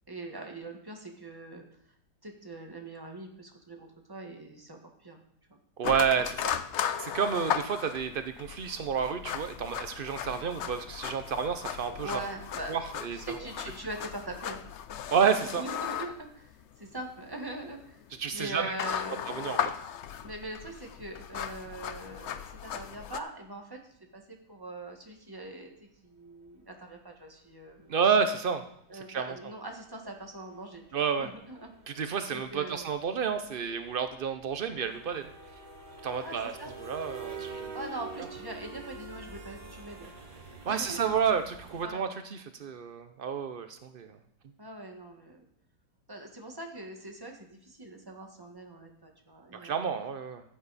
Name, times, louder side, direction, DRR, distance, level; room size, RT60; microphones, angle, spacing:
voice 1, 0.1-1.6 2.2-5.2 5.5-5.6 10.3-10.4 11.9-12.7 13.1-14.6 15.4-18.0 18.3-19.2 20.2-23.8 24.1-28.0 28.9-31.7 32.3-32.9 36.2-36.7 37.7-40.1 40.7-41.0 41.8-42.0 44.6-45.4 46.1-49.9, right 2 dB, 15° right, 2 dB, 1.5 m, -42 dB
sound 1, 5.8-23.2, left 9 dB, 75° left, 0.6 m, -37 dB
voice 2, 5.8-6.5 7.0-12.2 12.7-13.4 15.1-15.6 18.2-18.7 19.3-19.6 27.9-28.6 29.1-29.3 30.9-31.3 32.0-35.3 36.0-36.5 36.8-37.8 40.7-44.2 49.5-50.4, right 6 dB, 85° right, 9 dB, 0.4 m, -30 dB
sound 2, 25.4-25.5 27.2-27.4 27.7-27.8 28.1-28.3 28.6-28.7 29.0-41.8, right 3 dB, 65° right, 2.4 m, -47 dB
14.5 x 8.2 x 4.1 m, 0.71 s
omnidirectional pair, 1.9 m